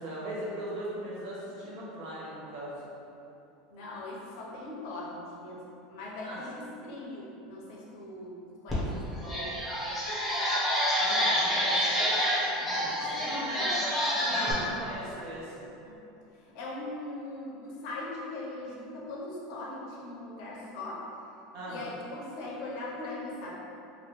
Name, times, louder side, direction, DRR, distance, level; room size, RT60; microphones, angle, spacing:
voice 1, 0.0-2.8 6.2-6.4 11.0-12.2 12.6-13.2 14.3-15.7 21.5-21.8, right 1 dB, 60° right, -7 dB, 1.0 m, -39 dB
voice 2, 3.7-9.5 13.0-13.8 14.2-14.7 15.9-16.0 16.5-21.0 21.7-23.6, left 2 dB, 65° left, -4 dB, 0.7 m, -40 dB
sound 1, 8.7-8.8 9.2-14.5, equal, ahead, 0.7 m, -28 dB
3.0 x 2.7 x 3.0 m, 2.9 s
supercardioid pair, 155°, 3 cm